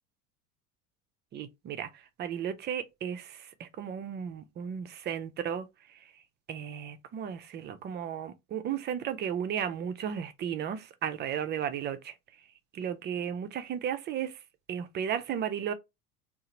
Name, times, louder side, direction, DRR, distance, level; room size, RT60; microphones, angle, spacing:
voice 1, 1.3-1.9 2.2-5.7 6.5-12.1 12.7-14.3 14.7-15.7, right 8 dB, 25° right, 0.5 m, -34 dB
3.7 x 2.5 x 4.2 m
figure-of-eight pair, 75°, 46 cm